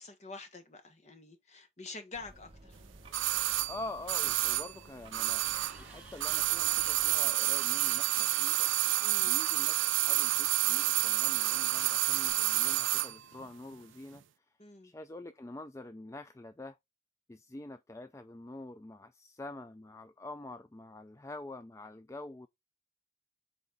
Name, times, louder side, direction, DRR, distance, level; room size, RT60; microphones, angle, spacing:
voice 1, 0.0-2.8 9.0-9.3 14.6-14.9, left 3 dB, 35° left, 1.3 m, -47 dB
sound 1, 2.1-7.2, right 1 dB, 25° right, 1.2 m, -55 dB
sound 2, 3.1-5.9 6.1-13.2 13.4-13.5, right 16 dB, 85° right, 0.4 m, -29 dB
voice 2, 3.7-5.4 5.8-8.7 9.2-14.6 14.8-16.8 17.3-22.5, left 2 dB, 15° left, 0.3 m, -46 dB
Laughter, 5.4-12.3, right 2 dB, 5° right, 1.1 m, -55 dB
6.8 x 4.2 x 3.8 m
head